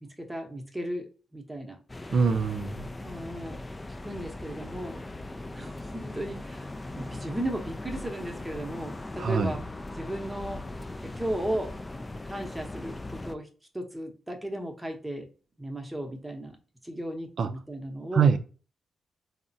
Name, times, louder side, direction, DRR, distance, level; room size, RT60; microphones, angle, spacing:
voice 1, 0.0-1.8 3.0-3.6 4.0-5.0 5.5-9.6 9.9-10.6 11.0-11.7 12.2-13.5 13.7-15.3 15.6-16.6 16.8-18.3, right 1 dB, 10° right, 0.8 m, -35 dB
sound 1, 1.9-13.4, left 2 dB, 25° left, 0.3 m, -39 dB
voice 2, 2.1-2.8 9.2-9.6 17.4-17.5 18.1-18.4, right 6 dB, 65° right, 0.4 m, -23 dB
3.6 x 2.1 x 2.6 m
cardioid pair, 60°, 0 cm